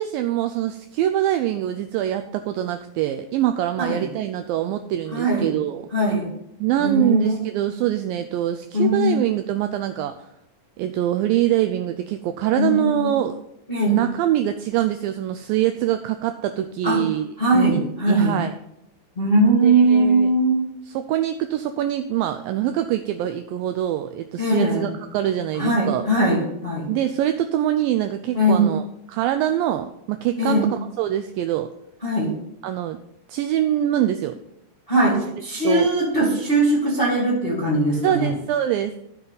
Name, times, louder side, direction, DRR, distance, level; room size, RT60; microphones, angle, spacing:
voice 1, 0.0-5.9 6.6-10.2 10.8-13.4 13.9-18.5 19.5-20.3 20.9-26.1 26.9-28.8 29.1-31.7 32.6-33.0 33.3-34.4 35.6-35.9 38.0-38.9, right 12 dB, 90° right, 8 dB, 2.0 m, -24 dB
voice 2, 5.1-5.5 5.9-6.3 6.8-7.4 8.7-9.2 12.5-13.1 13.7-14.0 16.8-17.0 17.4-18.3 19.1-20.6 24.4-24.9 25.6-26.9 28.3-28.7 30.4-30.7 32.0-32.3 34.9-38.3, right 1 dB, 25° left, -5 dB, 1.2 m, -20 dB
14.0 x 5.4 x 4.0 m, 0.79 s
omnidirectional pair, 4.6 m